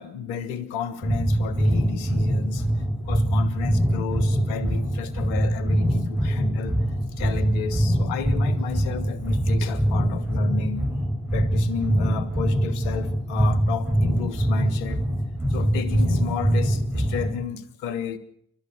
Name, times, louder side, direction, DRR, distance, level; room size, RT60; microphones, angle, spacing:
voice 1, 0.0-2.7 3.0-6.7 7.2-10.9 11.3-15.0 15.5-18.2, left 8 dB, 80° left, 15 dB, 1.5 m, -33 dB
sound 1, 1.0-17.4, equal, 5° right, 6.9 m, -23 dB
29.0 x 12.5 x 7.9 m, 0.71 s
hypercardioid pair, 45°, 38 cm